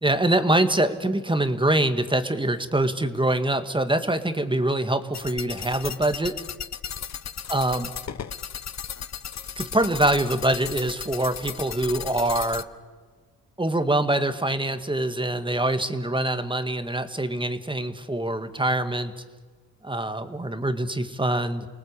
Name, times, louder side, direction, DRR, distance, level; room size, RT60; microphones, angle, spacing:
voice 1, 0.0-6.4 7.5-7.9 9.6-12.7 13.6-19.1 19.8-21.7, right 1 dB, 10° right, 9 dB, 1.9 m, -24 dB
sound 1, 5.1-12.6, left 8 dB, 40° left, 1.0 m, -35 dB
29.5 x 19.0 x 8.3 m, 1.4 s
cardioid pair, 80°, 39 cm